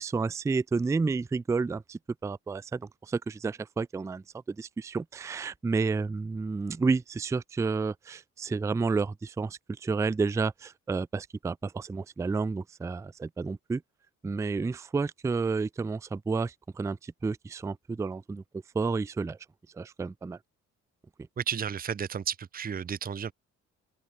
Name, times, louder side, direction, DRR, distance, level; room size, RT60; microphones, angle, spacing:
voice 1, 0.0-13.8 14.2-19.4 19.7-20.4, right 4 dB, 10° right, 0.3 m, -31 dB
voice 2, 21.4-23.3, right 7 dB, 30° right, 0.8 m, -32 dB
cardioid pair, 90°, 30 cm